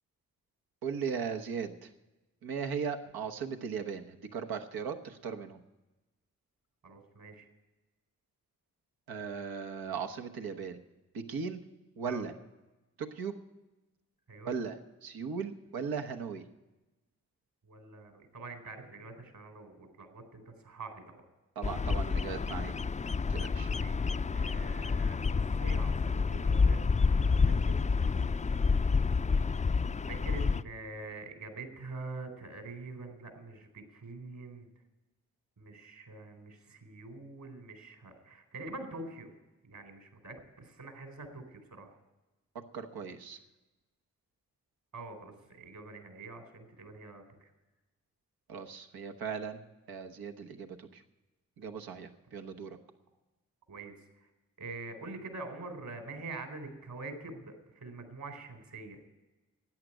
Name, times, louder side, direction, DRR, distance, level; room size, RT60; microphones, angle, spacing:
voice 1, 0.8-1.9 2.4-5.6 9.1-10.8 11.3-11.6 12.0-12.3 13.0-13.3 14.4-14.8 15.0-16.4 21.6-22.7 23.3-23.7 42.7-43.4 48.5-49.6 49.9-51.0 51.6-52.8, right 6 dB, 90° right, 6 dB, 1.1 m, -37 dB
voice 2, 6.8-7.5 12.1-12.3 14.3-14.6 17.6-21.2 23.7-28.4 30.1-34.7 35.6-39.3 39.7-41.9 44.9-47.5 53.7-53.9 54.6-59.0, right 3 dB, 65° right, 4 dB, 4.0 m, -45 dB
Bird vocalization bird call bird song, 21.6-30.6, left 4 dB, 20° left, 0.4 m, -29 dB
13.5 x 9.5 x 8.9 m, 1.1 s
supercardioid pair, 45°, 36 cm